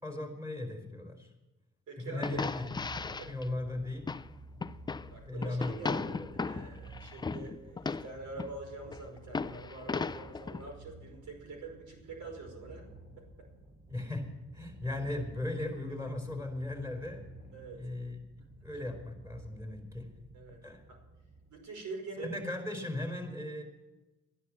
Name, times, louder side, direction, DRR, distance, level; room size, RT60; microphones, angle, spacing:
voice 1, 0.0-1.3 2.0-2.7 3.3-4.1 5.2-6.3 13.9-17.3 17.7-18.2 18.6-20.1 20.6-20.8 22.2-23.6, left 2 dB, 10° right, 3 dB, 4.7 m, -37 dB
voice 2, 1.9-2.5 3.2-3.5 5.1-12.9 13.2-13.3 17.5-17.8 18.7-18.8 20.3-20.6 20.9-21.0 21.5-22.4, right 3 dB, 70° right, 3 dB, 5.2 m, -45 dB
sound 1, 2.2-4.3 4.6-5.1 5.4-8.5 8.8-10.7, left 4 dB, 15° left, 0.4 m, -36 dB
Purr, 2.3-21.6, right 2 dB, 30° right, 6.9 m, -53 dB
13.0 x 10.5 x 7.4 m, 1.1 s
cardioid pair, 90°, 30 cm